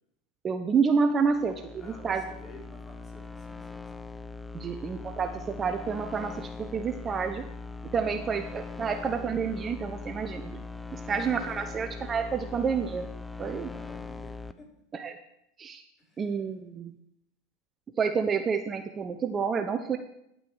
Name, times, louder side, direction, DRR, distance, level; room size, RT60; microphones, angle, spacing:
voice 1, 0.4-2.2 4.5-7.4 7.9-10.6 10.9-13.1 13.4-13.7 14.9-15.2 15.6-15.8 16.2-16.9 18.0-20.0, right 5 dB, 30° right, 7 dB, 0.9 m, -29 dB
sound 1, 1.1-14.5, left 3 dB, 10° left, 0.7 m, -41 dB
voice 2, 1.8-4.0 11.1-11.3 13.4-14.7 16.0-16.4, left 1 dB, 25° left, -3 dB, 4.7 m, -53 dB
10.5 x 9.2 x 4.9 m, 0.80 s
hypercardioid pair, 95°, 0 cm